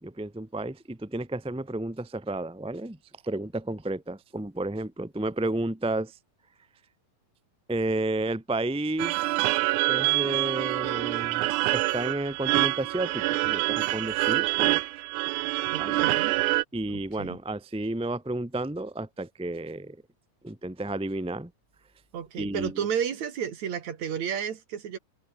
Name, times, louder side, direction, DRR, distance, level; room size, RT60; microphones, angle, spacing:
voice 1, 0.0-3.0 3.2-6.1 7.7-9.4 9.9-11.4 11.7-14.8 15.8-16.0 16.7-20.0 20.4-21.5 22.4-22.8, right 2 dB, 5° right, 0.6 m, -32 dB
sound 1, 9.0-16.6, right 19 dB, 85° right, 1.8 m, -26 dB
voice 2, 15.7-16.4 16.9-17.4 22.1-25.0, right 8 dB, 55° right, 3.0 m, -32 dB
omnidirectional pair, 4.1 m